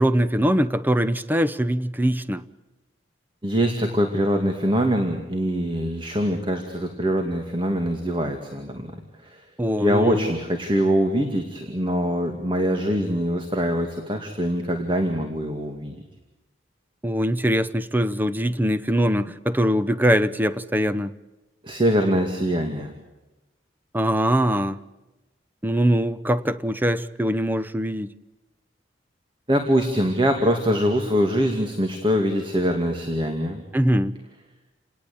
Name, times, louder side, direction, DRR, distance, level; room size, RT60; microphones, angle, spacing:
voice 1, 0.0-2.4 9.6-10.3 17.0-21.1 23.9-24.8 25.6-28.1 33.7-34.2, equal, 10° right, 13 dB, 0.8 m, -22 dB
voice 2, 3.4-9.4 9.8-16.0 21.6-22.9 29.5-33.6, equal, 30° right, 4 dB, 2.4 m, -23 dB
29.0 x 19.0 x 8.7 m, 1.1 s
head